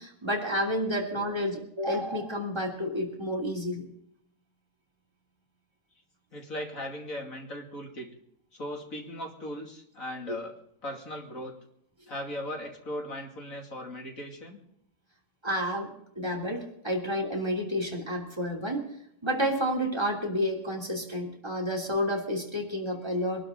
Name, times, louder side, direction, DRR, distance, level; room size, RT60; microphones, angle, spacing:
voice 1, 0.0-3.9 15.4-15.9 16.1-18.9 19.2-23.4, equal, 15° right, 1 dB, 3.2 m, -30 dB
voice 2, 6.3-8.1 8.5-11.5 12.1-14.6, left 1 dB, 55° left, 2 dB, 3.0 m, -38 dB
23.0 x 12.5 x 3.9 m, 0.73 s
omnidirectional pair, 1.7 m